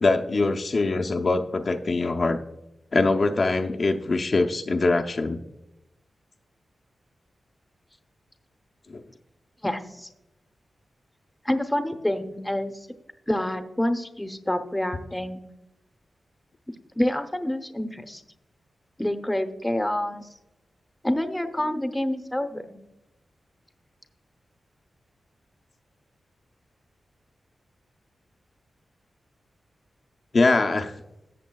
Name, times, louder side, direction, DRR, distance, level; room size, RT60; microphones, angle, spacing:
voice 1, 0.0-2.4 2.9-5.4 8.9-9.0 30.3-30.9, left 3 dB, 45° left, 3 dB, 0.6 m, -23 dB
voice 2, 9.6-10.1 11.4-12.9 13.3-15.4 17.0-18.2 19.0-20.3 21.0-22.8, left 1 dB, 10° left, 8 dB, 0.8 m, -27 dB
13.5 x 8.2 x 2.3 m, 0.91 s
wide cardioid pair, 110°, 0 cm